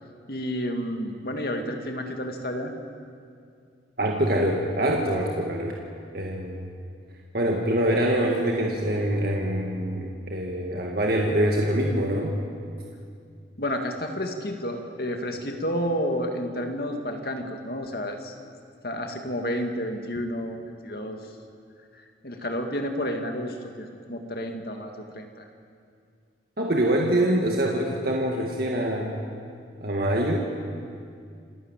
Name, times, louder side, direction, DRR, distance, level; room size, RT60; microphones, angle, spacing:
voice 1, 0.3-2.7 13.6-18.3 18.8-21.2 21.9-25.5, equal, 55° left, 4 dB, 2.1 m, -31 dB
voice 2, 4.0-5.8 6.1-6.6 7.3-12.4 26.6-29.2 29.8-30.4, right 1 dB, 55° right, -1 dB, 1.8 m, -24 dB
27.5 x 12.5 x 9.1 m, 2.3 s
head